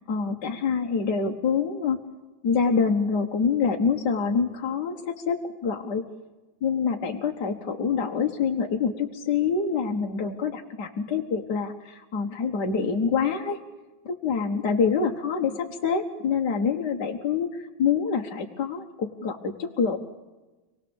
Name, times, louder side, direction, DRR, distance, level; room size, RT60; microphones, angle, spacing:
voice 1, 0.1-2.0 2.4-6.0 6.6-13.6 14.2-20.0, left 5 dB, 60° left, 1 dB, 1.9 m, -26 dB
27.0 x 18.5 x 7.1 m, 1.1 s
omnidirectional pair, 2.2 m